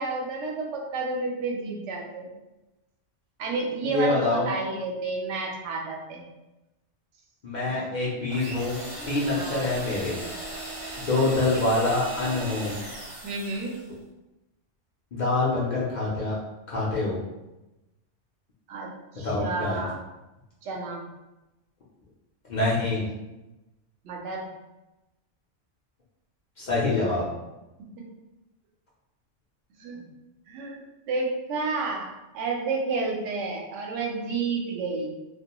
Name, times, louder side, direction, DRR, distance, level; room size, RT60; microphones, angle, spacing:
voice 1, 0.0-2.3 3.4-6.2 7.7-7.9 9.3-9.6 11.1-11.7 13.2-13.7 18.7-18.9 19.1-20.0 20.6-21.0 24.0-24.5 27.8-27.9 29.8-30.0 30.5-32.1 32.3-35.1, right 3 dB, 75° right, 0 dB, 0.9 m, -31 dB
voice 2, 3.8-4.5 7.4-8.8 9.1-10.2 11.1-12.7 15.1-16.4 16.7-17.2 19.2-19.9 22.5-23.1 26.6-27.2, left 2 dB, 55° left, -7 dB, 0.5 m, -25 dB
sound 1, 8.3-13.9, right 1 dB, 35° right, 0.5 m, -38 dB
2.3 x 2.2 x 2.8 m, 1.0 s
omnidirectional pair, 1.3 m